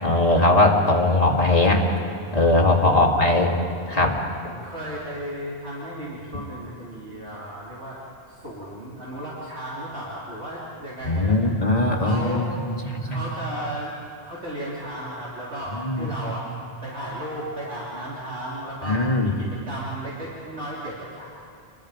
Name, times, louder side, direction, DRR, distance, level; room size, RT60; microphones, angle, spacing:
voice 1, 0.0-1.8 2.3-3.5 3.9-4.2 11.0-13.2 15.8-16.1 18.9-19.3, left 2 dB, 35° left, 0 dB, 2.4 m, -20 dB
voice 2, 2.9-3.3 4.4-8.0 8.3-12.6 13.0-16.5 16.8-21.2, right 1 dB, 85° right, -7 dB, 3.7 m, -34 dB
28.0 x 21.0 x 5.1 m, 2.5 s
omnidirectional pair, 1.1 m